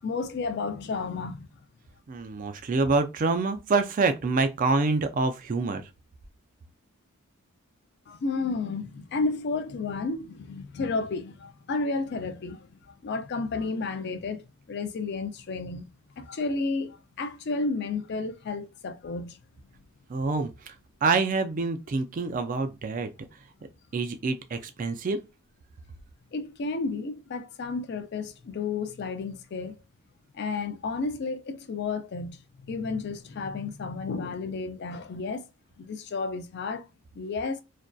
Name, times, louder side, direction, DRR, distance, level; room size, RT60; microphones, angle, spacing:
voice 1, 0.0-1.5 8.1-12.7 13.0-15.8 16.2-19.4 26.3-29.8 30.3-35.4 35.8-36.9 37.2-37.6, left 3 dB, 50° left, 0.4 m, -32 dB
voice 2, 2.1-5.8 20.1-20.7 21.0-23.1 23.9-25.2, right 3 dB, 35° right, 0.3 m, -26 dB
2.5 x 2.1 x 2.2 m
head